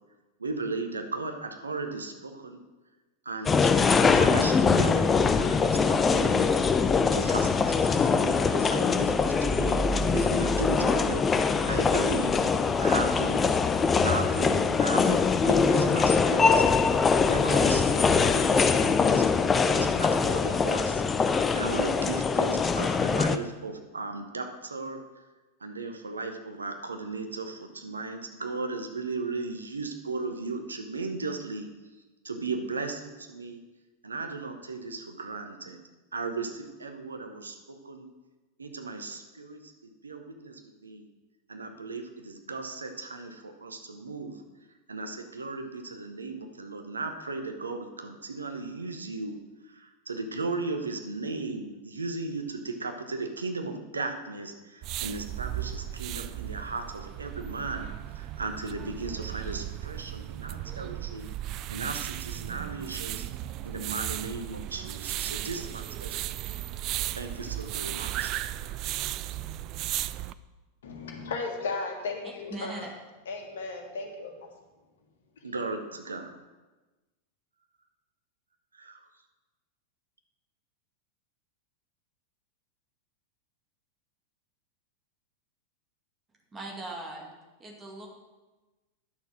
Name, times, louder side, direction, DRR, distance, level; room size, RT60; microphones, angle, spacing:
voice 1, 0.4-2.6 3.2-3.7 4.0-6.4 7.1-9.8 10.1-11.4 11.7-12.4 12.8-16.6 17.3-19.3 19.7-25.0 25.6-31.7 32.2-33.6 34.0-35.8 36.1-38.1 38.6-39.7 40.0-41.0 41.5-44.4 44.9-49.4 49.6-57.9 58.1-61.3 61.7-63.3 63.6-66.6 67.1-68.3 75.4-76.3 78.7-79.1, right 3 dB, 75° right, 6 dB, 1.0 m, -36 dB
sound 1, 3.5-23.4, left 5 dB, 20° left, 0.5 m, -23 dB
sound 2, 54.8-70.3, right 14 dB, 40° right, 0.3 m, -35 dB
voice 2, 70.8-72.9 73.3-74.5, left 4 dB, 60° left, 3 dB, 1.8 m, -35 dB
voice 3, 72.5-72.9 86.5-87.3 87.6-88.1, right 2 dB, 20° right, 0 dB, 2.1 m, -39 dB
10.5 x 6.6 x 6.2 m, 1.2 s
figure-of-eight pair, 90°, 0 cm